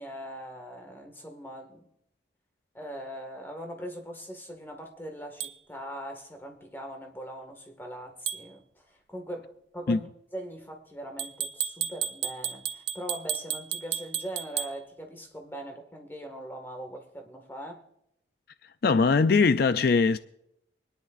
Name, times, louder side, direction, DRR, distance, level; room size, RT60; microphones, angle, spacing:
voice 1, 0.0-1.9 2.7-10.1 10.3-17.8, equal, 10° left, 1.7 m, -41 dB
sound 1, 5.4-5.5 8.3-8.5 11.2-14.7, right 10 dB, 70° right, 0.6 m, -33 dB
voice 2, 18.8-20.2, left 4 dB, 55° left, 0.4 m, -21 dB
24.5 x 10.5 x 2.5 m
head